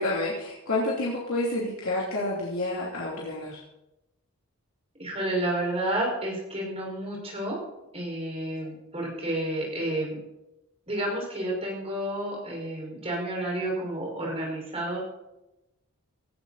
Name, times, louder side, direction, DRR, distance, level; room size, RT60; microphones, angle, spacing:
voice 1, 0.0-3.6, left 2 dB, 70° left, -5 dB, 3.2 m, -29 dB
voice 2, 5.0-7.6 7.9-10.2 10.9-15.0, right 1 dB, 25° right, -2 dB, 5.7 m, -30 dB
17.0 x 14.5 x 4.3 m, 0.92 s
head